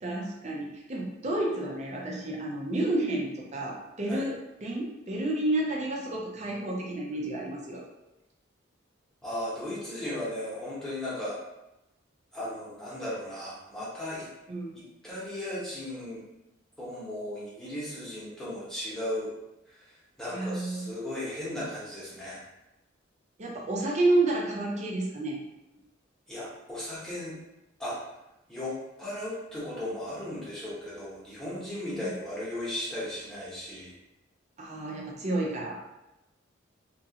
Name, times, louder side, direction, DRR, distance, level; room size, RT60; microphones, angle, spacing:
voice 1, 0.0-7.8 14.5-14.8 20.3-20.9 23.4-25.4 31.9-32.1 34.6-35.8, right 2 dB, 35° right, -2 dB, 0.5 m, -30 dB
voice 2, 9.2-11.4 12.3-14.3 14.7-16.2 16.8-19.3 20.2-22.4 26.3-27.4 27.8-28.0 28.5-33.9, left 1 dB, 5° left, -9 dB, 0.9 m, -36 dB
2.9 x 2.4 x 2.8 m, 0.94 s
head